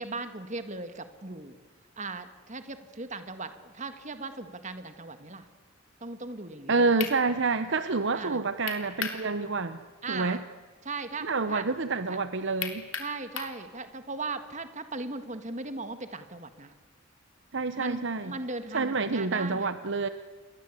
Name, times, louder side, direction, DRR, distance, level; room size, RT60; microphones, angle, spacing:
voice 1, 0.0-1.6 2.0-5.5 6.0-6.9 8.1-8.4 10.0-10.4 10.8-11.6 12.1-12.2 13.0-16.7 17.8-19.7, right 3 dB, 35° right, 9 dB, 1.7 m, -38 dB
sound 1, 6.6-6.7 7.0-7.2 8.7-9.2 9.6-9.7 12.6-13.6, left 7 dB, 65° left, 3.3 m, -34 dB
voice 2, 6.7-9.8 10.1-10.4 11.2-12.9 17.5-18.4 18.7-20.1, right 3 dB, 55° right, 11 dB, 0.8 m, -28 dB
29.0 x 22.0 x 8.3 m, 1.4 s
head